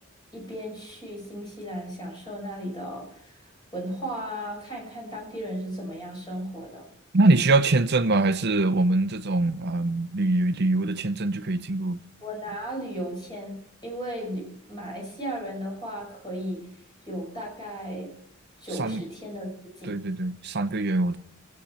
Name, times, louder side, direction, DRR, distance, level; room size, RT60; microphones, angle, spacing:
voice 1, 0.3-6.8 12.2-16.7 17.1-18.1 18.6-19.5 19.8-20.0, equal, 20° left, 5.4 m, -35 dB
voice 2, 7.1-12.0 18.8-19.0 19.8-21.2, right 2 dB, 50° right, 0.8 m, -23 dB
22.5 x 8.4 x 4.3 m
head